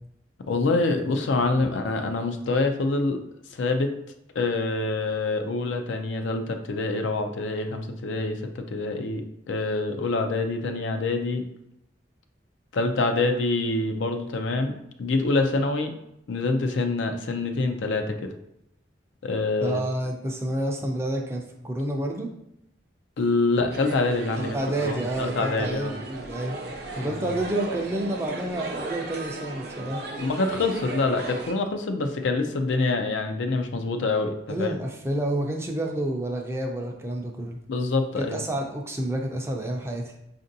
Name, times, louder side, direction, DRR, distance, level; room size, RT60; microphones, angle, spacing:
voice 1, 0.5-3.2 3.5-3.9 4.4-11.4 12.7-14.7 15.0-15.9 16.3-18.3 19.2-19.8 23.2-24.6 24.8-25.9 27.0-27.2 30.1-34.7 37.7-38.4, left 3 dB, 80° left, 6 dB, 0.4 m, -26 dB
voice 2, 19.6-22.3 24.4-26.6 27.0-30.0 34.5-37.6 38.2-40.2, right 1 dB, 15° right, 1 dB, 0.4 m, -29 dB
sound 1, 23.7-31.5, right 3 dB, 55° right, 0.6 m, -36 dB
5.1 x 2.5 x 2.6 m, 0.79 s
head